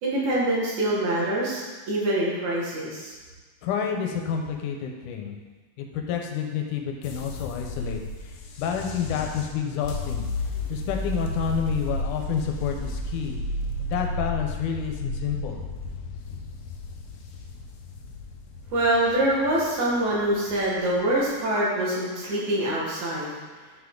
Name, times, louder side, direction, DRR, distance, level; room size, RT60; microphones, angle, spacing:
voice 1, 0.0-3.1 18.7-23.3, right 1 dB, 70° right, -6 dB, 3.2 m, -25 dB
voice 2, 3.6-5.4 5.8-8.3 8.6-10.3 10.7-13.4 13.8-15.6, left 7 dB, 90° left, 2 dB, 2.3 m, -29 dB
sound 1, 7.0-21.2, left 2 dB, 70° left, 1.9 m, -33 dB
9.4 x 6.0 x 3.8 m, 1.3 s
omnidirectional pair, 3.5 m